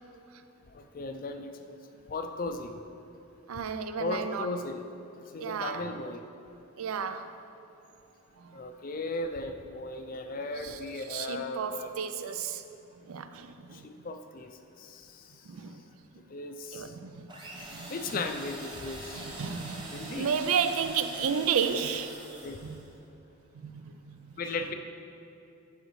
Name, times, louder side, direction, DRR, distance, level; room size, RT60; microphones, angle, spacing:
voice 1, 0.7-1.8 2.1-2.7 4.0-4.8 5.3-6.2 8.5-11.9 13.8-14.5 14.8-15.2 16.3-16.9 17.9-19.3 19.9-20.3 22.4-22.6 24.4-24.7, left 2 dB, 40° left, 0.4 m, -36 dB
voice 2, 3.5-4.5 5.4-5.9 6.8-7.3 8.4-8.6 10.6-10.8 11.1-12.6 13.1-13.9 15.5-15.8 16.7-17.3 17.7-17.9 19.1-22.1 22.6-22.8 23.5-24.3, right 7 dB, 85° right, 0.4 m, -32 dB
sound 1, 17.3-22.9, right 1 dB, 20° right, 0.8 m, -44 dB
11.5 x 5.0 x 3.1 m
head